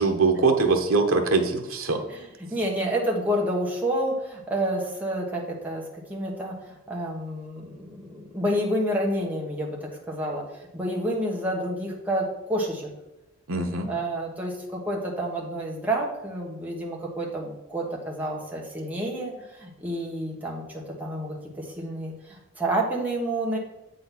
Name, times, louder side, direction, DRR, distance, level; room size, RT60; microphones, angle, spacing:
voice 1, 0.0-2.0 13.5-13.9, right 3 dB, 85° right, 3 dB, 1.0 m, -22 dB
voice 2, 2.5-10.4 10.7-12.9 13.9-23.6, right 1 dB, 10° right, -3 dB, 1.4 m, -29 dB
7.6 x 4.0 x 5.8 m, 0.98 s
head